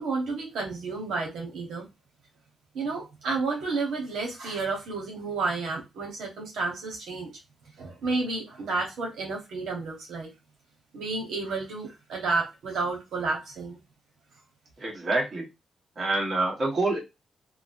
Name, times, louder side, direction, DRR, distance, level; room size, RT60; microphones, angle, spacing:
voice 1, 0.0-1.9 2.7-7.3 7.8-10.3 10.9-13.8, right 3 dB, 90° right, 0 dB, 0.9 m, -31 dB
voice 2, 14.8-15.5 16.0-17.0, right 2 dB, 40° right, -1 dB, 1.2 m, -26 dB
3.0 x 2.1 x 2.5 m, 0.22 s
cardioid pair, 115°, 0 cm